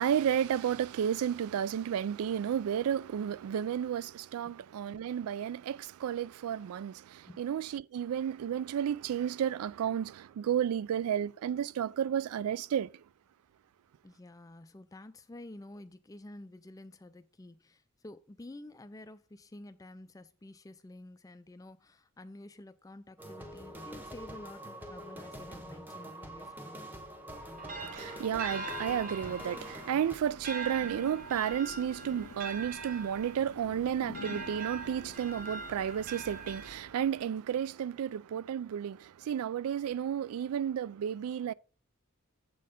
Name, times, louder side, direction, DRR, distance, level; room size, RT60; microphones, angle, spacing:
voice 1, 0.0-12.9 27.7-41.5, right 9 dB, 85° right, 0.3 m, -32 dB
voice 2, 14.0-26.9, left 1 dB, 15° left, 0.3 m, -50 dB
sound 1, 23.2-30.2, right 1 dB, 10° right, 1.1 m, -45 dB
sound 2, 27.3-37.2, right 3 dB, 40° right, 0.8 m, -42 dB
sound 3, 28.4-36.7, left 7 dB, 90° left, 0.3 m, -52 dB
7.6 x 4.3 x 5.0 m
head